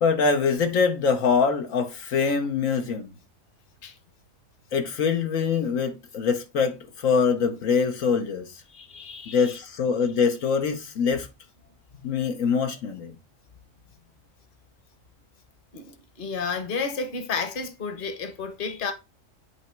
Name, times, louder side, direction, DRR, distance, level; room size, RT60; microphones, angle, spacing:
voice 1, 0.0-3.1 4.7-8.6 9.3-11.3 12.0-13.1, left 5 dB, 75° left, 1.2 m, -24 dB
voice 2, 8.7-9.6 12.0-12.3 15.7-18.9, left 5 dB, 40° left, 1.1 m, -32 dB
8.3 x 2.9 x 4.4 m
omnidirectional pair, 1.4 m